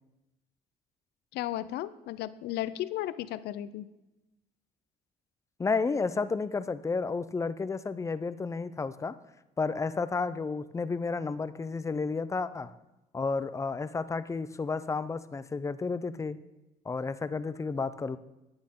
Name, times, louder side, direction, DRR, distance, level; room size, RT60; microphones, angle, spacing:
voice 1, 1.3-3.9, left 13 dB, 75° left, 16 dB, 0.5 m, -34 dB
voice 2, 5.6-9.1 9.6-12.7 13.1-16.4 16.9-18.2, left 4 dB, 20° left, 14 dB, 0.5 m, -31 dB
11.5 x 8.9 x 3.7 m, 0.97 s
cardioid pair, 110°, 17 cm